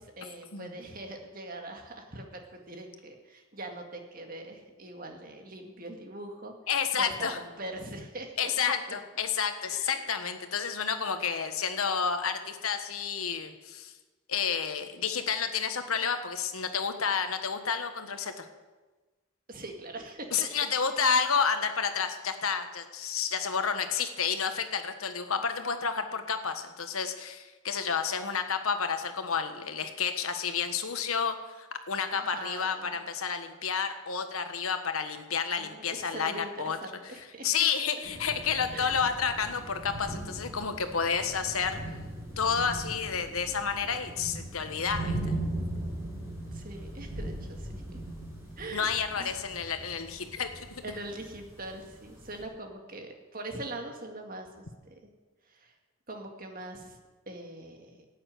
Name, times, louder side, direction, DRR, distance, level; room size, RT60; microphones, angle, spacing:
voice 1, 0.0-6.5 7.0-8.5 9.7-10.0 19.5-20.5 32.1-33.0 35.6-37.5 38.7-38.9 46.5-48.0 48.6-48.9 49.2-49.3 50.8-54.9 55.5-55.7 56.1-57.0 57.3-58.1, right 2 dB, 40° right, 3 dB, 2.0 m, -42 dB
voice 2, 6.7-7.4 8.4-13.9 14.3-18.5 20.3-36.8 37.4-41.8 42.4-45.4 48.7-50.8, left 6 dB, 80° left, 8 dB, 1.4 m, -30 dB
sound 1, 38.0-52.4, right 1 dB, 10° right, 4.4 m, -39 dB
13.0 x 8.9 x 9.4 m, 1.3 s
head